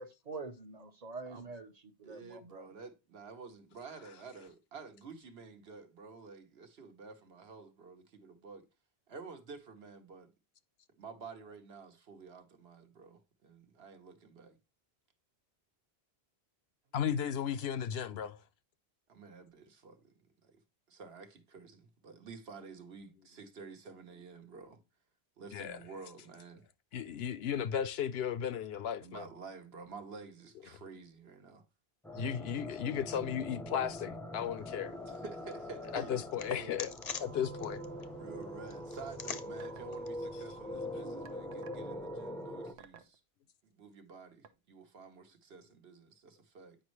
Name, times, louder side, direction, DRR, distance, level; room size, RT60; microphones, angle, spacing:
voice 1, 0.0-2.7, right 3 dB, 40° right, 0.9 m, -46 dB
voice 2, 2.0-8.7 9.1-10.3 11.0-14.6 19.1-20.6 20.9-24.8 25.4-26.6 29.0-31.6 35.1-36.9 37.1-37.2 38.2-43.2 43.6-46.8, right 4 dB, 70° right, 1.3 m, -50 dB
voice 3, 16.9-18.4 25.5-25.8 26.9-29.2 32.1-34.9 35.9-36.9 37.2-37.8, left 8 dB, 75° left, 0.8 m, -35 dB
sound 1, 32.0-42.7, left 1 dB, 5° left, 0.5 m, -43 dB
sound 2, 34.6-41.4, left 6 dB, 45° left, 0.6 m, -48 dB
sound 3, 39.6-40.0 41.3-41.9 42.8-43.2 44.4-44.5, right 8 dB, 90° right, 1.0 m, -53 dB
8.9 x 5.2 x 3.1 m
omnidirectional pair, 1.1 m